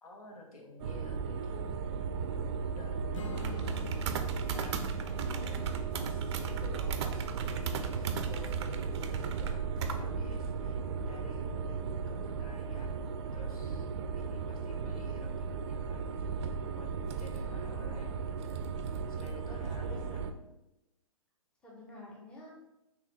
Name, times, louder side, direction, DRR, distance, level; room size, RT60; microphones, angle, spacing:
voice 1, 0.0-1.8 2.6-4.9 5.9-12.9 13.3-16.1 16.7-16.9 17.2-18.7 19.1-20.2, left 2 dB, 75° left, 1 dB, 1.0 m, -51 dB
sound 1, 0.8-20.3, right 5 dB, 50° right, 0.4 m, -35 dB
Strum, 3.1-8.5, left 5 dB, 60° left, 0.4 m, -50 dB
voice 2, 5.0-5.8 17.3-17.9 19.8-20.2 21.6-22.5, left 1 dB, 5° left, -5 dB, 0.7 m, -50 dB
3.8 x 3.0 x 3.2 m, 0.93 s
hypercardioid pair, 135°, 19 cm